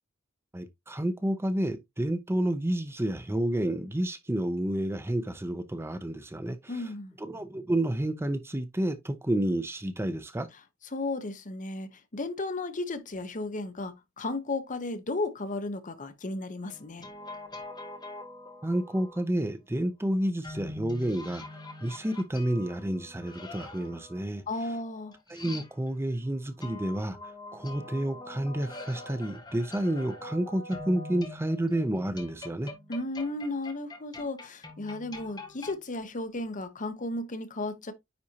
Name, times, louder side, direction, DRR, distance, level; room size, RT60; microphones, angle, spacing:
voice 1, 0.5-6.9 7.2-10.5 18.6-21.5 21.8-24.7 25.3-32.7, right 1 dB, 10° right, 0.6 m, -30 dB
voice 2, 6.7-7.1 10.9-17.1 24.5-25.1 32.9-37.9, left 2 dB, 35° left, 0.9 m, -34 dB
sound 1, 16.7-19.2 20.4-26.1 26.6-35.8, left 2 dB, 20° left, 1.7 m, -44 dB
9.6 x 4.2 x 2.8 m
head